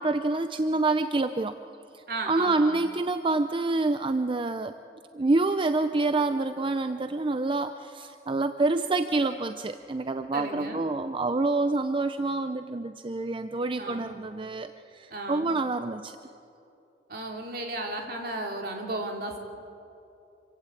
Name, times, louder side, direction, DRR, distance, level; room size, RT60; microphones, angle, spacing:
voice 1, 0.0-1.5 1.9-4.7 5.1-16.2, right 3 dB, 30° right, 9 dB, 0.5 m, -27 dB
voice 2, 2.1-2.8 10.3-10.8 13.8-14.2 15.1-15.6 17.1-19.4, right 2 dB, 60° right, 2 dB, 3.0 m, -34 dB
27.0 x 16.0 x 8.5 m, 2.8 s
head